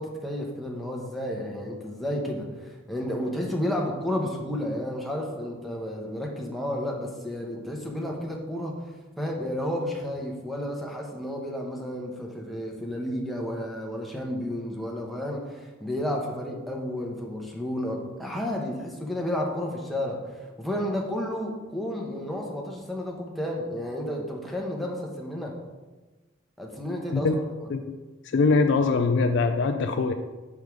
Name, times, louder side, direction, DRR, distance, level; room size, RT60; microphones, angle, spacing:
voice 1, 0.0-8.8 9.2-25.5 26.6-27.4, left 1 dB, ahead, -1 dB, 0.9 m, -31 dB
voice 2, 28.2-30.1, left 4 dB, 60° left, 6 dB, 0.4 m, -23 dB
5.2 x 4.7 x 5.1 m, 1.2 s
head